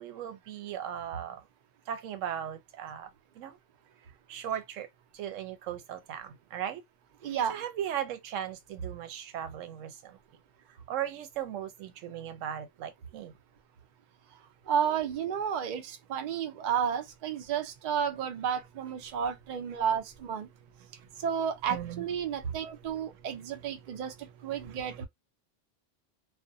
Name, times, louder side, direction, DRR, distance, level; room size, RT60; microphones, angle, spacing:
voice 1, 0.0-1.4 1.9-3.1 3.4-3.6 4.3-4.9 5.1-6.8 7.5-10.2 10.9-13.3 21.7-22.1, right 10 dB, 90° right, 1.0 m, -37 dB
voice 2, 7.2-7.6 14.7-20.5 21.2-25.0, right 8 dB, 55° right, 0.5 m, -32 dB
2.4 x 2.1 x 2.6 m
omnidirectional pair, 1.3 m